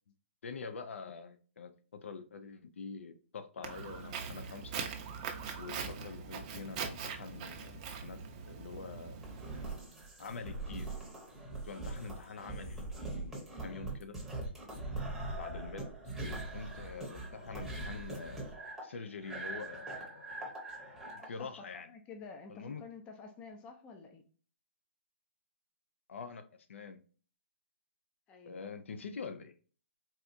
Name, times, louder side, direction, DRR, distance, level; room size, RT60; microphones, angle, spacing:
voice 1, 0.4-4.8 5.6-9.2 10.2-10.9 11.6-14.2 15.3-15.9 16.2-18.4 18.8-20.3 21.3-21.9 22.5-22.8 26.1-26.4 26.7-27.0 28.4-29.5, left 5 dB, 75° left, 0.5 m, -45 dB
Walk footsteps, 3.6-9.7, right 6 dB, 30° right, 0.5 m, -42 dB
sound 1, 9.2-21.3, right 2 dB, ahead, 0.8 m, -42 dB
voice 2, 21.2-24.2 28.3-28.7, left 4 dB, 15° left, 0.4 m, -50 dB
4.1 x 2.3 x 2.5 m
hypercardioid pair, 160°, 7 cm